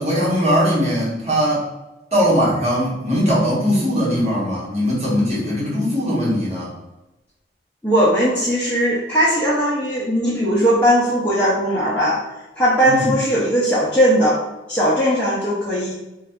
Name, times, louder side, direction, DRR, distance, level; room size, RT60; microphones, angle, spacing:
voice 1, 0.0-1.7 2.1-6.7 12.8-13.1, equal, 35° right, -7 dB, 1.1 m, -20 dB
voice 2, 7.8-12.2 12.6-14.4 14.7-15.9, equal, 10° left, -9 dB, 0.5 m, -18 dB
2.6 x 2.3 x 3.4 m, 1.0 s
head